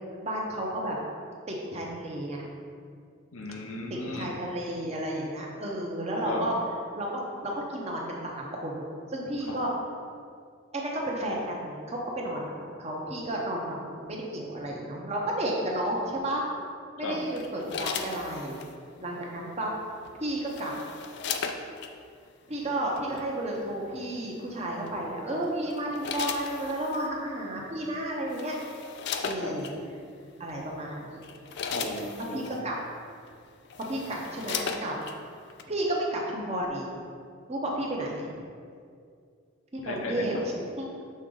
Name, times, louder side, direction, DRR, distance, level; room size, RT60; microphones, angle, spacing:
voice 1, 0.2-1.0 1.5-2.5 3.9-6.6 6.9-9.7 10.7-16.4 17.0-18.6 19.0-19.7 20.2-20.7 22.5-28.6 29.2-29.7 30.4-31.2 32.3-32.8 33.9-35.0 35.7-36.9 37.5-38.3 39.7-40.9, right 1 dB, 30° right, -2 dB, 0.8 m, -32 dB
voice 2, 3.3-4.3 6.2-6.5 9.5-9.6 17.0-17.2 29.4-29.6 31.7-32.7 39.8-40.5, left 2 dB, 75° left, 1 dB, 0.8 m, -35 dB
sound 1, 17.4-18.7 20.1-21.9 23.0-23.2 24.9-25.2 25.7-27.1 27.9-28.0 28.3-29.8 30.5-30.7 31.1-32.6 33.3-33.4 33.6-35.2 35.6-35.7, left 6 dB, 50° left, 0.4 m, -36 dB
6.5 x 3.8 x 3.8 m, 2.3 s
head